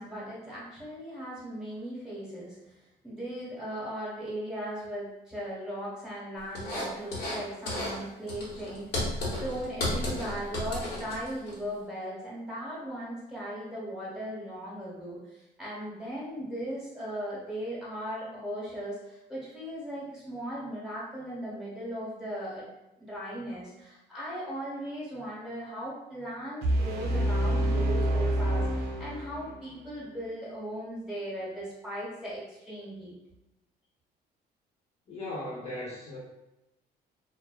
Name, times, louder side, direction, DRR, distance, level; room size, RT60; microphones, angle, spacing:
voice 1, 0.0-2.8 3.0-22.7 23.0-33.2, equal, 5° right, -8 dB, 1.0 m, -38 dB
sound 1, 6.5-7.4 7.7-8.0 8.3-11.5, left 1 dB, 70° left, 1.0 m, -33 dB
sound 2, 26.6-29.7, right 1 dB, 75° right, 0.5 m, -27 dB
voice 2, 35.1-36.2, left 1 dB, 40° left, -6 dB, 0.9 m, -37 dB
2.4 x 2.2 x 2.2 m, 0.93 s
cardioid pair, 110°, 17 cm